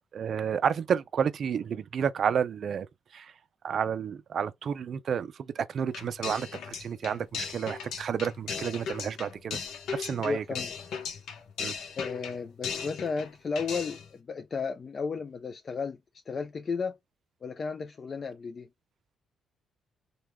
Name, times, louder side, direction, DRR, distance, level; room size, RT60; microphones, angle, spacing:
voice 1, 0.1-2.9 3.1-3.3 3.6-9.6 9.9-10.4 11.6-11.7, right 7 dB, 55° right, 0.3 m, -30 dB
sound 1, 5.9-13.3 13.6-14.1, left 6 dB, 75° left, 0.8 m, -37 dB
voice 2, 10.2-10.7 12.0-16.0 16.3-17.0 17.4-18.7, left 5 dB, 40° left, 0.3 m, -34 dB
3.0 x 2.2 x 3.4 m
cardioid pair, 90°, 0 cm